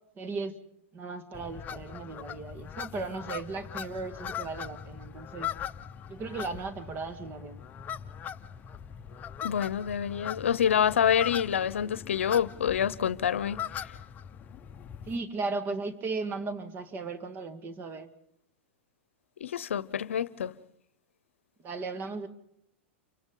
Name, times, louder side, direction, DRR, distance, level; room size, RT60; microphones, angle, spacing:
voice 1, 0.2-0.5 0.9-5.5 6.1-7.6 15.0-18.1 21.6-22.3, right 3 dB, 30° right, 1.8 m, -36 dB
sound 1, 1.3-15.2, left 9 dB, 25° left, 0.8 m, -40 dB
voice 2, 9.4-13.9 19.4-20.6, left 8 dB, 85° left, 0.7 m, -27 dB
29.0 x 24.5 x 3.9 m
hypercardioid pair, 120°, 7 cm